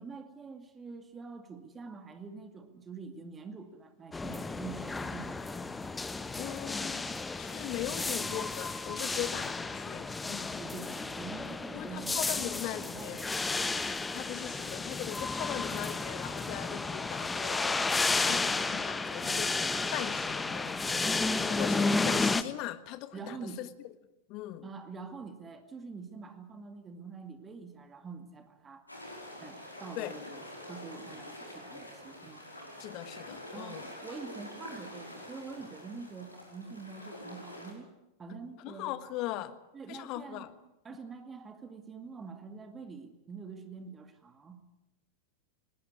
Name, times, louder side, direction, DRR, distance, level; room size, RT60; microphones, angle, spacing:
voice 1, 0.0-5.6 8.0-8.3 10.5-13.5 23.1-23.6 24.6-28.9 29.4-32.4 33.5-37.9 38.2-39.0 39.7-40.5 40.8-44.6, right 5 dB, 20° right, 8 dB, 2.2 m, -46 dB
sound 1, 4.1-22.4, left 3 dB, 10° left, 1.1 m, -32 dB
voice 2, 6.4-10.6 11.7-13.2 14.1-23.7 24.3-24.7 30.0-30.2 32.8-33.9 38.6-39.6 39.9-40.5, left 14 dB, 40° left, 13 dB, 1.5 m, -40 dB
sound 2, 28.9-37.7, left 1 dB, 85° left, 5.3 m, -46 dB
20.5 x 18.5 x 9.7 m, 0.94 s
figure-of-eight pair, 90°, 0 cm